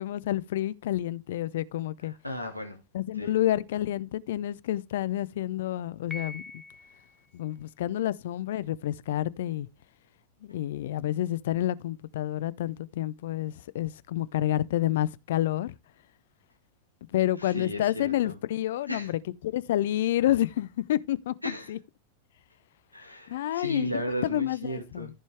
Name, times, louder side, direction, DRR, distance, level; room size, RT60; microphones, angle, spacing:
voice 1, 0.0-2.1 2.9-6.4 7.3-9.7 10.4-15.7 17.1-21.3 21.7-21.8 23.3-23.9 24.2-25.1, left 13 dB, 55° left, 0.5 m, -29 dB
voice 2, 2.0-2.8 3.2-3.3 17.4-18.3 18.9-19.1 21.4-21.7 22.9-25.1, equal, 90° left, 1.7 m, -35 dB
Piano, 6.1-7.2, left 3 dB, 15° left, 1.1 m, -42 dB
14.5 x 5.3 x 3.4 m
figure-of-eight pair, 90°, 0 cm